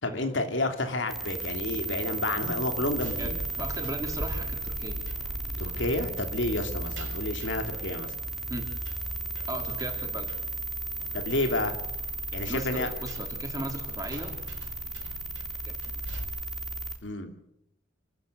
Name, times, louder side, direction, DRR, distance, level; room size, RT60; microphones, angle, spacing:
voice 1, 0.0-3.4 5.6-8.1 11.1-11.8 12.3-12.9 17.0-17.3, left 2 dB, 85° left, 6 dB, 3.2 m, -30 dB
sound 1, 1.1-17.0, right 2 dB, ahead, 3.2 m, -35 dB
sound 2, 3.0-16.2, right 1 dB, 90° right, 3.8 m, -42 dB
voice 2, 3.6-5.0 8.5-8.7 9.5-10.3 12.5-14.4 15.7-16.1, right 1 dB, 20° right, 3 dB, 3.9 m, -37 dB
28.5 x 14.0 x 8.1 m, 0.75 s
head